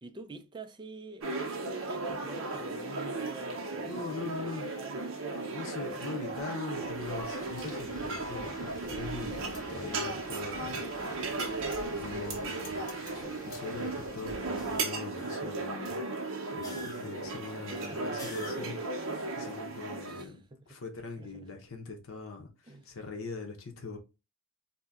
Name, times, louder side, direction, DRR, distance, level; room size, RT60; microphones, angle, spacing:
voice 1, 0.0-5.2 17.7-18.1 20.1-20.7 21.2-21.5 22.6-22.9, right 3 dB, 20° right, 0.4 m, -47 dB
sound 1, 1.2-20.2, right 3 dB, 65° right, 0.6 m, -36 dB
voice 2, 3.8-4.7 5.3-10.8 11.2-12.8 13.1-16.0 16.5-20.4 20.7-24.0, left 4 dB, 75° left, 0.7 m, -42 dB
Wind, 6.7-14.8, left 1 dB, 40° left, 1.4 m, -50 dB
sound 2, 14.5-15.8 16.6-17.4 18.2-19.0, equal, 20° left, 0.7 m, -45 dB
2.7 x 2.1 x 3.5 m
head